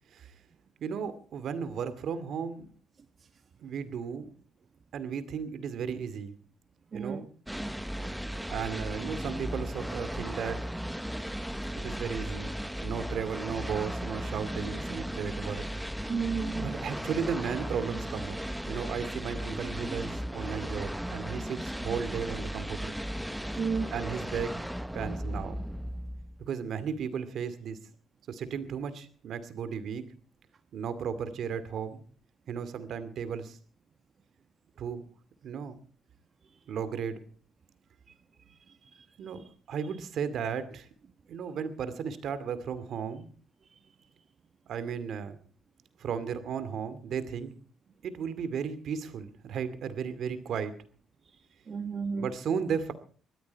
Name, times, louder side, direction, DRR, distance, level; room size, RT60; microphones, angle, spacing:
voice 1, 0.8-2.7 3.6-4.3 4.9-6.3 6.9-7.3 8.5-10.6 11.8-12.5 12.8-15.6 16.6-18.4 18.7-22.9 23.9-24.6 24.9-25.6 26.4-27.8 28.3-30.0 30.7-32.0 32.5-33.6 34.8-35.0 35.4-35.8 36.7-37.2 39.2-40.9 41.3-43.3 44.7-45.4 46.0-47.5 48.0-50.7 52.2-52.9, right 7 dB, 70° right, 12 dB, 2.3 m, -35 dB
voice 2, 6.9-7.3 16.1-16.7 23.6-23.9 36.5-36.6 51.7-52.3, right 5 dB, 45° right, 8 dB, 1.2 m, -32 dB
sound 1, 7.5-26.5, equal, ahead, 0.9 m, -36 dB
20.0 x 14.0 x 4.6 m, 0.41 s
cardioid pair, 90°, 0 cm